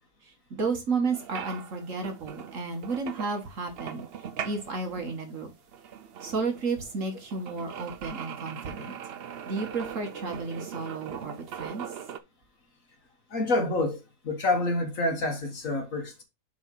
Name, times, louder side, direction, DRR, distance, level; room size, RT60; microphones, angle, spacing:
voice 1, 0.2-4.0 4.4-5.5 6.2-9.0 9.5-11.8, right 4 dB, 50° right, 1.6 m, -32 dB
sound 1, 1.1-12.2, right 8 dB, 75° right, 0.5 m, -41 dB
voice 2, 13.3-16.2, left 2 dB, 55° left, 1.6 m, -28 dB
7.1 x 3.9 x 4.6 m
omnidirectional pair, 1.8 m